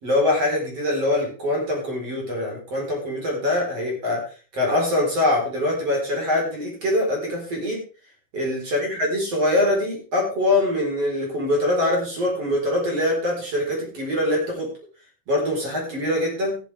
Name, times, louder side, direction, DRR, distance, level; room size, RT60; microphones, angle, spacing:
voice 1, 0.0-4.2 4.5-7.8 8.3-14.7 15.3-16.6, left 1 dB, 30° right, -1 dB, 4.9 m, -23 dB
15.0 x 12.0 x 3.5 m, 0.37 s
omnidirectional pair, 5.6 m